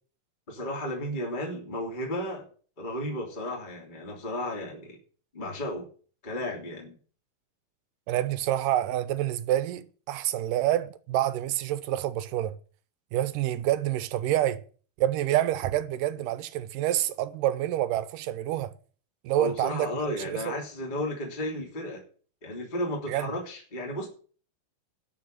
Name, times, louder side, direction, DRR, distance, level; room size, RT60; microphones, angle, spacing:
voice 1, 0.5-2.5 2.8-5.0 5.3-5.9 6.2-7.0 19.4-22.0 22.4-24.1, left 1 dB, 15° left, 2.9 m, -33 dB
voice 2, 8.1-12.5 13.1-14.6 15.0-18.7 19.2-20.6 23.1-23.3, right 13 dB, 80° right, 2.4 m, -27 dB
12.5 x 5.9 x 9.2 m
omnidirectional pair, 3.9 m